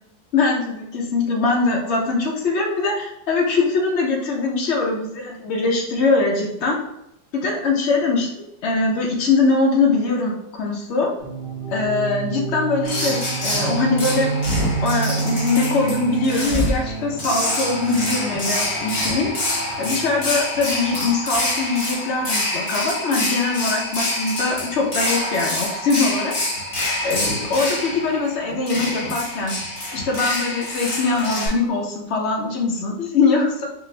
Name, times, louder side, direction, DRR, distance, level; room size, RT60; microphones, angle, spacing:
voice 1, 0.3-6.8 7.3-11.1 11.7-14.3 14.8-19.3 19.8-26.3 27.0-29.6 29.9-33.6, left 3 dB, 85° left, 0 dB, 0.6 m, -22 dB
sound 1, 11.2-20.4, right 5 dB, 45° right, 0.4 m, -29 dB
sound 2, 12.8-31.5, left 1 dB, 40° left, 1.3 m, -26 dB
4.4 x 2.5 x 3.2 m, 0.84 s
omnidirectional pair, 2.0 m